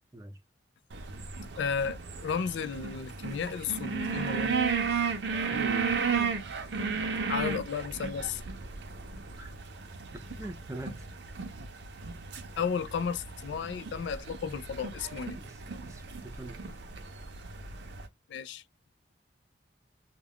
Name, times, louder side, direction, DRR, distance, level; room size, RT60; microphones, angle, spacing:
sound 1, 0.9-18.1, right 5 dB, 75° right, 0.6 m, -34 dB
voice 1, 1.6-4.5 7.3-8.4 12.6-15.4 18.3-18.6, left 6 dB, 80° left, 0.3 m, -33 dB
voice 2, 5.5-6.0 9.4-9.5 10.1-11.1 15.4-16.6, right 1 dB, 15° right, 0.4 m, -43 dB
2.3 x 2.2 x 3.4 m
head